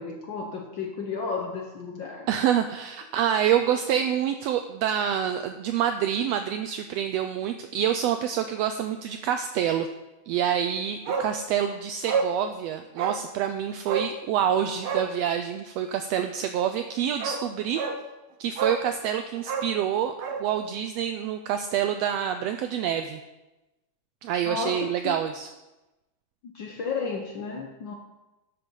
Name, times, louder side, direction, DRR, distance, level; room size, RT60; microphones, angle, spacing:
voice 1, 0.0-2.3 24.4-25.1 26.4-27.9, left 4 dB, 80° left, 1 dB, 1.0 m, -33 dB
voice 2, 2.3-9.9 10.3-17.8 18.4-20.1 20.4-23.2 24.2-25.5, right 9 dB, 80° right, 8 dB, 1.5 m, -27 dB
Bark, 11.1-11.3 11.6-11.7 12.1-12.3 13.0-13.2 13.9-14.1 14.8-15.1 16.7-16.8 17.2-17.4 17.8-18.0 18.6-18.9 19.4-20.4 20.7-20.8, right 5 dB, 65° right, 1.4 m, -29 dB
13.0 x 6.7 x 5.4 m, 1.0 s
omnidirectional pair, 3.4 m